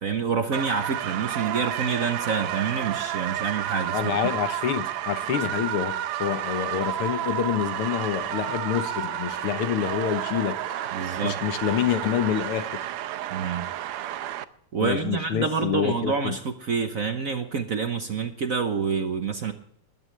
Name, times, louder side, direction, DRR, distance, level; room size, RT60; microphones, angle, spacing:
voice 1, 0.0-4.2 10.9-11.4 13.3-13.7 14.7-19.5, right 5 dB, 50° right, 1.1 m, -27 dB
sound 1, 0.5-14.4, right 12 dB, 85° right, 1.7 m, -31 dB
voice 2, 3.9-10.6 11.2-12.8 14.8-16.4, left 9 dB, 80° left, 2.0 m, -27 dB
20.5 x 14.0 x 3.3 m
omnidirectional pair, 2.4 m